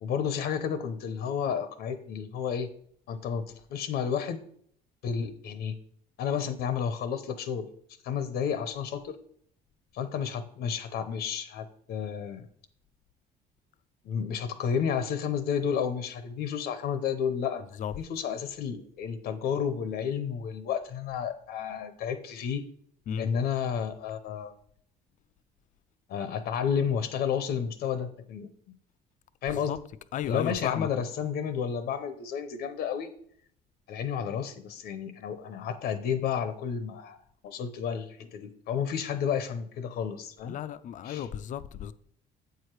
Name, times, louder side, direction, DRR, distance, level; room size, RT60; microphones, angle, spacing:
voice 1, 0.0-2.7 3.1-4.4 5.0-5.8 6.2-7.7 8.0-9.2 9.9-12.5 14.0-17.7 17.9-22.7 23.2-24.5 26.1-28.5 29.4-29.8 30.3-33.1 33.9-40.6 41.0-41.2, left 7 dB, 70° left, 0.7 m, -31 dB
voice 2, 30.1-30.9 40.4-41.9, left 9 dB, 50° left, 0.4 m, -34 dB
8.0 x 4.8 x 4.6 m
cardioid pair, 110°, 17 cm